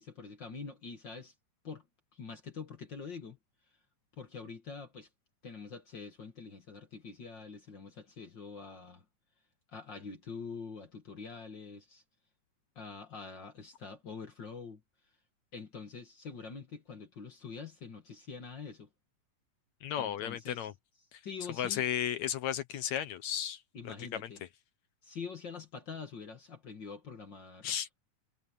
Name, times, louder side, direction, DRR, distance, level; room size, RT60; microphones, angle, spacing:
voice 1, 0.0-1.3 1.6-1.9 2.1-3.4 4.1-5.1 5.4-9.0 9.7-12.0 12.8-14.8 15.5-18.9 19.9-20.7 21.2-21.8 23.7-24.4 25.0-27.8, left 5 dB, 40° left, 1.9 m, -45 dB
voice 2, 19.8-20.7 21.1-21.2 21.6-23.6 23.8-23.9 27.6-27.9, left 10 dB, 70° left, 2.0 m, -34 dB
omnidirectional pair, 3.8 m